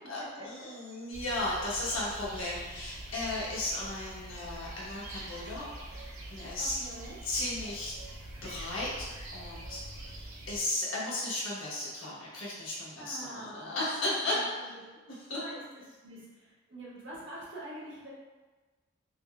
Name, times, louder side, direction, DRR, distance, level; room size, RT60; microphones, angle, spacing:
voice 1, 0.1-6.8 7.2-7.9 8.4-9.8 10.1-14.7 15.1-15.4, left 1 dB, 85° left, -7 dB, 1.2 m, -35 dB
sound 1, 1.1-10.6, right 1 dB, 90° right, 0.6 m, -44 dB
voice 2, 6.6-7.2 13.0-13.8 14.2-14.7 15.3-18.1, right 1 dB, 65° right, -7 dB, 1.3 m, -45 dB
5.1 x 2.2 x 2.3 m, 1.3 s
head